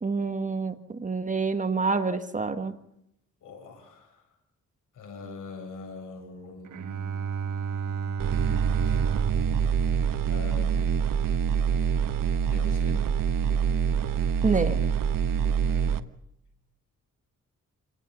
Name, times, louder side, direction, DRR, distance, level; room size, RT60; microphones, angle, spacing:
voice 1, 0.0-2.7 14.4-14.8, right 4 dB, 25° right, 8 dB, 1.7 m, -27 dB
voice 2, 3.4-4.2 4.9-9.2 9.5-9.8 10.3-11.0 12.5-13.1, left 4 dB, 75° left, 3 dB, 7.9 m, -44 dB
Bowed string instrument, 6.6-11.2, right 6 dB, 65° right, 1.5 m, -33 dB
sound 1, 8.2-16.0, right 7 dB, 90° right, 1.3 m, -25 dB
28.5 x 17.5 x 6.9 m, 0.78 s
wide cardioid pair, 140°, 32 cm